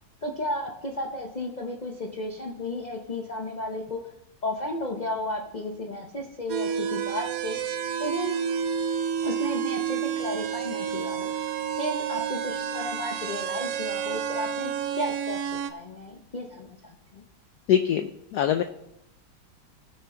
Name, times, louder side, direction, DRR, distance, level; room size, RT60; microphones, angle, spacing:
voice 1, 0.2-4.0 4.4-7.6 8.0-8.3 9.2-11.3 11.8-17.2, left 1 dB, 70° left, 0 dB, 0.4 m, -33 dB
sound 1, 6.5-15.7, right 8 dB, 85° right, 0.7 m, -30 dB
voice 2, 17.7-18.6, left 9 dB, 85° left, 9 dB, 0.8 m, -23 dB
18.5 x 6.5 x 3.7 m, 0.82 s
omnidirectional pair, 2.3 m